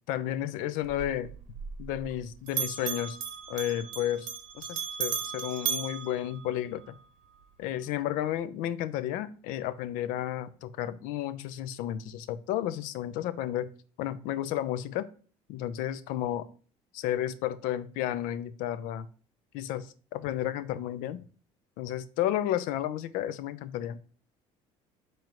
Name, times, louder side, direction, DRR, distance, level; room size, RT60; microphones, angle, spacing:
voice 1, 0.1-1.3 1.8-3.2 3.5-4.3 4.5-7.0 7.6-13.7 14.0-15.1 15.5-16.4 16.9-19.1 19.5-21.3 21.8-24.0, left 12 dB, 70° left, 14 dB, 0.4 m, -32 dB
Bell, 0.8-2.2 2.5-7.0, right 8 dB, 70° right, 0.9 m, -36 dB
4.3 x 3.2 x 3.7 m, 0.40 s
supercardioid pair, 80°, 14 cm